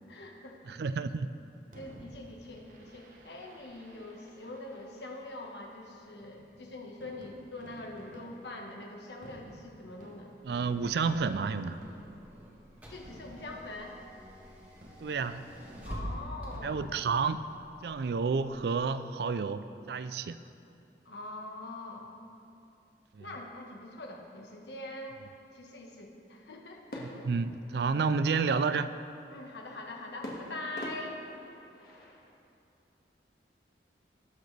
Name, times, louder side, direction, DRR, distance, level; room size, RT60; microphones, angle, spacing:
voice 1, 0.1-0.6 1.7-10.3 12.9-14.0 15.8-16.8 21.0-22.1 23.2-27.2 29.3-31.2, left 2 dB, 75° left, 1 dB, 1.3 m, -43 dB
voice 2, 0.7-1.3 10.4-11.8 15.0-15.5 16.6-17.4 17.8-20.4 23.1-23.3 27.0-28.9, right 5 dB, 65° right, 12 dB, 0.4 m, -30 dB
Fireworks, 1.7-17.9, right 1 dB, 50° right, 1.0 m, -53 dB
Car / Engine, 10.4-18.7, equal, 10° right, 1.4 m, -47 dB
sound 1, 26.9-28.5 30.2-32.3, left 1 dB, 55° left, 1.7 m, -44 dB
18.5 x 6.5 x 3.3 m, 2.6 s
head